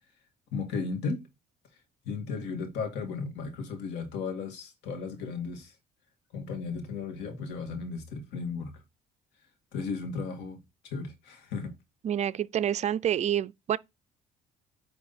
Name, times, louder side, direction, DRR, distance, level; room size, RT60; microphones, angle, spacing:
voice 1, 0.5-1.3 2.0-5.7 6.3-8.7 9.7-11.7, left 4 dB, 90° left, 2.2 m, -35 dB
voice 2, 12.0-13.8, right 10 dB, 40° right, 0.4 m, -28 dB
9.4 x 3.4 x 4.2 m
cardioid pair, 110°, 17 cm